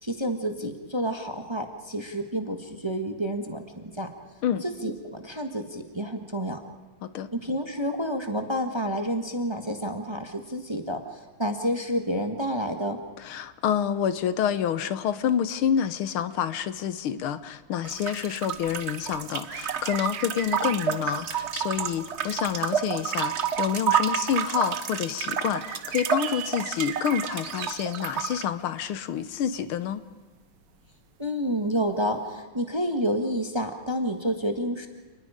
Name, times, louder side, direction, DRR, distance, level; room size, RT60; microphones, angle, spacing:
voice 1, 0.0-4.1 4.6-6.6 7.3-13.0 31.2-34.9, equal, 15° right, 5 dB, 1.2 m, -29 dB
voice 2, 13.2-30.0, left 9 dB, 85° left, 13 dB, 1.8 m, -28 dB
sound 1, 17.8-28.4, right 8 dB, 50° right, 0.9 m, -30 dB
sound 2, 19.5-21.7 22.6-22.7 23.6-23.7 25.5-28.1 29.5-29.7 32.3-32.4, right 9 dB, 75° right, 1.9 m, -39 dB
28.5 x 20.0 x 5.0 m, 1.3 s
omnidirectional pair, 2.3 m